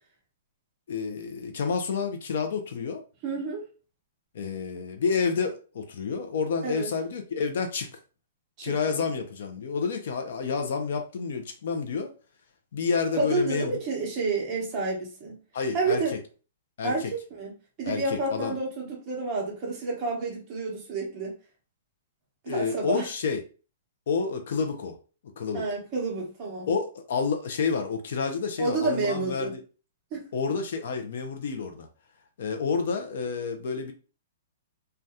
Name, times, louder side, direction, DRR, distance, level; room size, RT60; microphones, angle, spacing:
voice 1, 0.9-3.0 4.3-7.9 8.6-12.1 12.7-13.8 15.5-16.0 16.8-17.1 17.9-18.5 22.5-23.4 24.1-25.0 25.4-25.6 26.7-29.6 30.3-31.9 32.4-33.9, left 5 dB, 55° left, 0.4 m, -29 dB
voice 2, 3.2-3.6 6.6-6.9 8.6-8.8 13.1-15.4 15.7-16.1 16.8-17.5 17.8-21.3 22.4-23.1 25.5-26.7 28.6-29.5 30.1-30.3, right 3 dB, 20° right, 0.9 m, -29 dB
2.6 x 2.2 x 3.5 m
hypercardioid pair, 175°, 0 cm